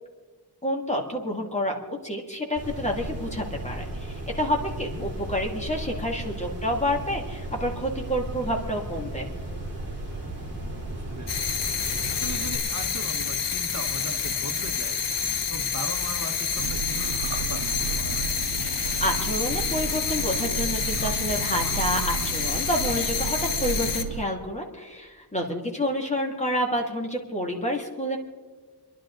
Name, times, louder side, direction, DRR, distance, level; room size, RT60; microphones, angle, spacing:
voice 1, 0.6-1.8 2.0-9.3 18.6-28.2, equal, 15° left, 1 dB, 2.2 m, -29 dB
sound 1, 2.6-12.6, right 1 dB, 25° right, 5.0 m, -35 dB
voice 2, 4.7-5.1 10.6-11.6 12.1-15.0 15.5-18.3, right 3 dB, 40° right, 3 dB, 1.3 m, -39 dB
sound 2, 11.3-24.0, left 6 dB, 85° left, 1.4 m, -28 dB
sound 3, 16.6-24.2, right 7 dB, 80° right, 0.8 m, -33 dB
29.0 x 11.5 x 3.9 m, 1.4 s
wide cardioid pair, 160°, 42 cm